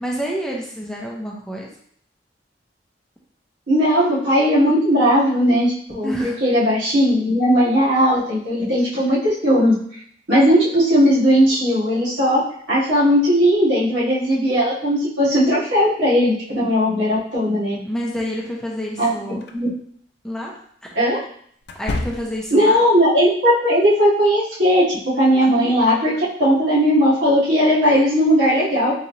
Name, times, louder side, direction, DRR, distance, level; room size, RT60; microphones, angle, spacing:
voice 1, 0.0-1.7 6.0-6.4 17.8-19.4 20.2-20.5 21.8-22.8, equal, 5° left, -2 dB, 0.6 m, -28 dB
voice 2, 3.7-9.7 10.3-12.4 12.7-17.8 19.0-19.1 19.5-19.7 21.0-21.2 22.5-28.9, equal, 90° right, -8 dB, 1.7 m, -17 dB
sound 1, 19.4-19.6 21.6-22.6, left 2 dB, 65° left, 0.4 m, -29 dB
3.9 x 3.2 x 2.7 m, 0.62 s
head